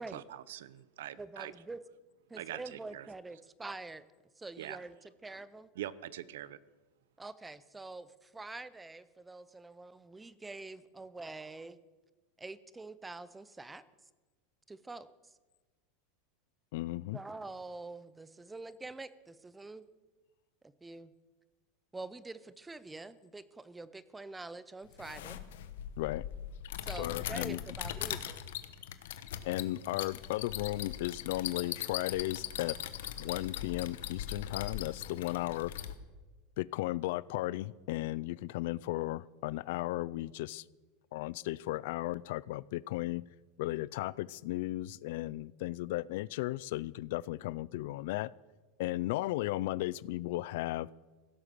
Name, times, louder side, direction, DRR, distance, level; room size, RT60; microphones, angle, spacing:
voice 1, 0.0-1.5 2.4-3.1 4.6-4.8 5.8-6.6, right 12 dB, 85° right, 18 dB, 0.7 m, -43 dB
voice 2, 1.2-1.8 2.3-4.0 4.4-5.7 7.2-11.8 12.4-13.8 14.7-15.1 17.1-19.9 20.8-21.1 21.9-25.4 26.8-28.4, right 3 dB, 5° right, 16 dB, 0.5 m, -46 dB
voice 3, 16.7-17.2 26.0-26.2 27.0-27.6 29.4-32.8 33.2-35.7 36.6-40.6 41.1-43.2 43.6-48.3 48.8-50.9, left 17 dB, 55° left, 22 dB, 0.4 m, -35 dB
sound 1, 24.9-35.9, left 11 dB, 85° left, 1.1 m, -40 dB
16.5 x 11.0 x 6.8 m, 1.3 s
supercardioid pair, 180°, 0 cm